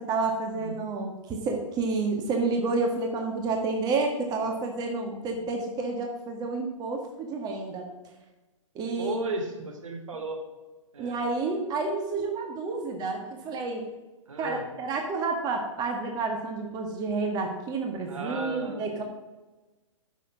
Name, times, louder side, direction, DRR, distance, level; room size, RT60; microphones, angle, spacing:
voice 1, 0.0-7.9 8.7-9.2 11.0-13.9 14.4-19.0, right 3 dB, 25° right, 3 dB, 1.6 m, -30 dB
voice 2, 9.0-10.4 10.9-11.2 14.3-14.7 18.0-18.9, right 2 dB, 75° right, 3 dB, 2.8 m, -34 dB
9.9 x 7.2 x 6.3 m, 1.2 s
hypercardioid pair, 125°, 17 cm